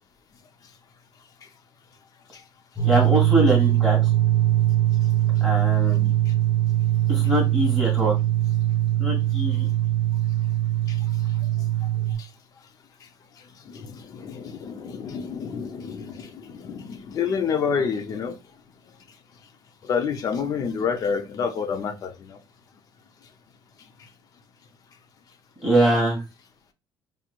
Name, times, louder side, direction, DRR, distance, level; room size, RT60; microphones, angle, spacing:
voice 1, 2.8-4.1 5.4-6.1 7.1-8.2 9.0-9.7 25.6-26.2, right 1 dB, 10° left, 2.1 m, -23 dB
sound 1, 2.8-12.1, right 14 dB, 10° right, 1.0 m, -21 dB
voice 2, 13.7-18.3 19.9-22.4, left 6 dB, 40° left, 0.6 m, -28 dB
4.8 x 2.9 x 2.4 m
cardioid pair, 160°, 9 cm